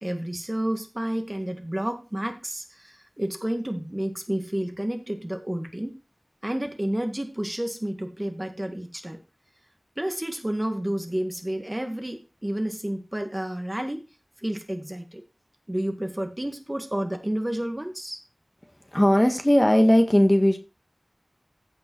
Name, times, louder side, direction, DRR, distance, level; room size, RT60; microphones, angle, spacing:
voice 1, 0.0-6.0 6.4-9.2 10.0-14.1 14.4-15.2 15.7-18.2, right 1 dB, 25° right, 1.8 m, -30 dB
voice 2, 18.9-20.6, equal, 20° left, 1.8 m, -18 dB
15.0 x 5.3 x 4.6 m
wide cardioid pair, 40°, 0 cm